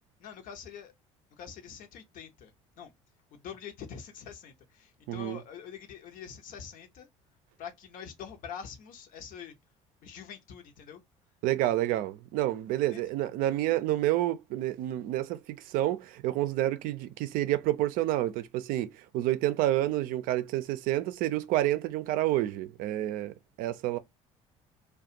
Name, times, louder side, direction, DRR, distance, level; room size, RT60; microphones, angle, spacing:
voice 1, 0.2-0.9 1.4-2.5 2.8-2.9 3.4-7.1 7.6-9.5 10.0-11.0 12.9-13.0, left 7 dB, 60° left, 0.7 m, -45 dB
voice 2, 5.1-5.4 11.4-23.3 23.6-24.0, right 14 dB, 65° right, 0.4 m, -29 dB
2.4 x 2.2 x 2.7 m
hypercardioid pair, 65°, 16 cm